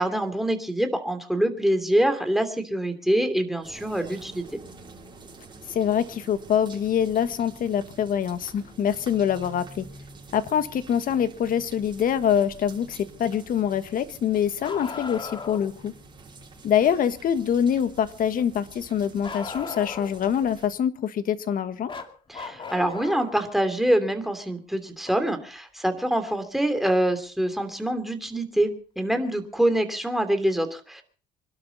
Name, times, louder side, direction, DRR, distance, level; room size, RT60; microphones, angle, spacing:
voice 1, 0.0-4.6 22.3-31.0, right 1 dB, ahead, 7 dB, 3.0 m, -25 dB
sound 1, 3.6-20.7, right 3 dB, 30° right, 6.6 m, -47 dB
voice 2, 5.7-9.9 10.3-15.9 16.6-21.9, left 8 dB, 55° left, 12 dB, 1.5 m, -25 dB
Bark, 14.6-15.7 19.2-20.3 21.9-23.4 25.1-25.2 27.1-27.2 28.3-28.4, left 4 dB, 30° left, 2.3 m, -37 dB
26.5 x 12.0 x 4.1 m, 0.39 s
cardioid pair, 110°, 17 cm